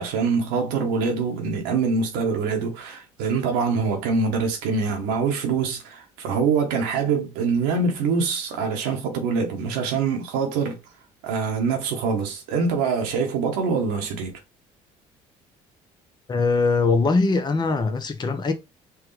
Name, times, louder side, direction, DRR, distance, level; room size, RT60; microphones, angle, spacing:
voice 1, 0.0-10.8 11.2-14.4, right 5 dB, 80° right, 1.0 m, -24 dB
voice 2, 16.3-18.5, left 3 dB, 25° left, 0.7 m, -21 dB
4.6 x 2.3 x 3.1 m
hypercardioid pair, 60°, 16 cm